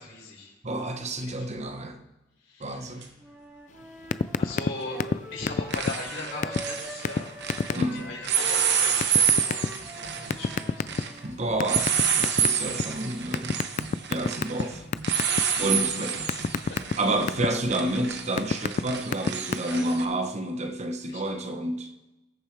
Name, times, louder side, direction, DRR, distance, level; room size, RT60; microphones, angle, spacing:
voice 1, 0.1-0.5 1.2-1.4 2.4-3.0 4.4-5.0 5.3-7.4 7.7-11.2 12.6-12.7 14.7-14.8 16.3-16.4 16.7-16.9 19.6-19.9 21.1-21.2, left 3 dB, 75° left, 4.7 m, -39 dB
voice 2, 0.6-2.0 2.6-3.0 7.7-8.1 11.2-13.6 14.1-14.9 15.6-16.2 17.0-21.9, right 1 dB, 35° right, 0.9 m, -29 dB
sound 1, 3.0-3.1 4.8-5.1 5.4-7.8 8.2-20.0, right 7 dB, 60° right, 1.1 m, -28 dB
Wind instrument woodwind instrument, 3.2-11.3, right 1 dB, 10° right, 2.1 m, -44 dB
sound 2, 4.1-4.7 5.0-5.2 5.5-6.1 6.4-6.6 7.0-7.2 7.5-7.8 9.0-9.7 10.3-11.2 11.6-12.8 13.3-14.6 14.9-15.4 15.8-17.5 18.1-18.8 19.1-19.5, left 5 dB, 40° left, 0.3 m, -25 dB
20.5 x 6.8 x 3.3 m
head